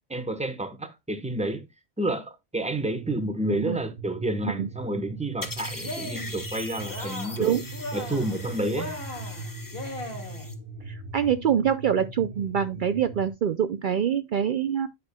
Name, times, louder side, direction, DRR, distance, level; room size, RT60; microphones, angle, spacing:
voice 1, 0.1-1.7 2.0-7.5 7.9-8.9, right 1 dB, 5° right, 1.1 m, -30 dB
sound 1, 2.9-13.3, right 2 dB, 75° right, 1.4 m, -40 dB
sound 2, 5.4-10.5, left 2 dB, 20° left, 0.9 m, -40 dB
Cheering, 5.7-6.4 6.8-7.5 7.7-8.4 8.7-10.5, left 2 dB, 60° left, 2.5 m, -38 dB
voice 2, 10.9-14.9, right 8 dB, 60° right, 0.7 m, -25 dB
10.5 x 6.8 x 2.2 m
omnidirectional pair, 1.1 m